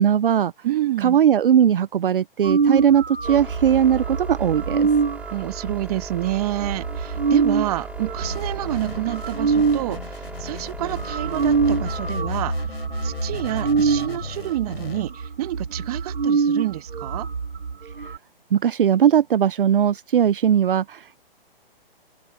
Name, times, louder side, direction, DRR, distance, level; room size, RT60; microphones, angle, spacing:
voice 1, 0.0-0.5 1.0-4.9 18.5-21.2, right 9 dB, 65° right, 0.8 m, -19 dB
voice 2, 0.6-1.2 5.3-12.7 13.0-17.3, right 14 dB, 40° right, 1.6 m, -28 dB
sound 1, 2.4-9.9 10.5-10.6 10.8-18.2, right 5 dB, 80° right, 2.0 m, -25 dB
sound 2, 3.2-12.1, right 3 dB, 5° right, 4.9 m, -38 dB
sound 3, 8.2-15.0, left 3 dB, 90° left, 7.3 m, -33 dB
figure-of-eight pair, 135°, 29 cm